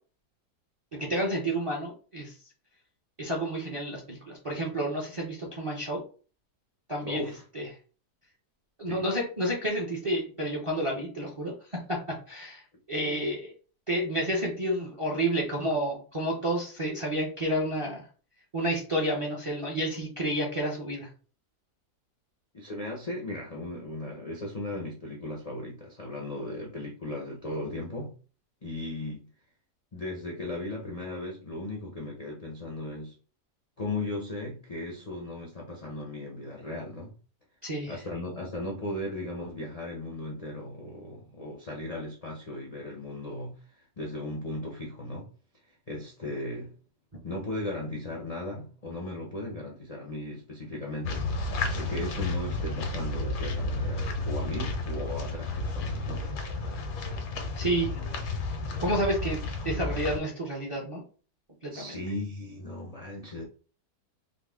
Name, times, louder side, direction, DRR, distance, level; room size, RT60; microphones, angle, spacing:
voice 1, 0.9-2.3 3.2-6.0 6.9-7.2 7.5-7.7 8.8-12.6 12.9-13.5 13.9-18.0 18.5-21.1 37.6-38.0 57.6-57.9 58.8-61.0 61.6-62.0, right 1 dB, 35° right, 0.5 m, -30 dB
voice 2, 7.0-7.4 8.9-9.0 22.5-28.2 28.6-29.3 29.9-33.1 33.8-37.1 37.9-45.3 45.7-46.7 47.2-56.3 61.7-63.4, left 1 dB, 60° left, 0.3 m, -37 dB
sound 1, 51.0-60.2, left 2 dB, 90° left, 1.4 m, -32 dB
3.9 x 2.1 x 3.5 m
omnidirectional pair, 1.7 m